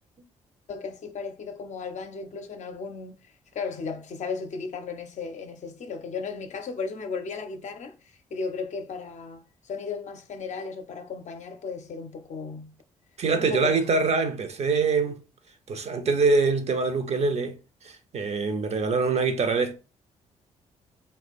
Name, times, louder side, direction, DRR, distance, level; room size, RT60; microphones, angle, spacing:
voice 1, 0.7-3.2 3.5-7.9 8.3-12.7 13.4-14.0, left 5 dB, 45° left, 0.6 m, -35 dB
voice 2, 13.2-15.2 15.7-17.6 17.8-19.7, right 4 dB, 40° right, 0.6 m, -24 dB
2.9 x 2.2 x 4.0 m
figure-of-eight pair, 40°, 16 cm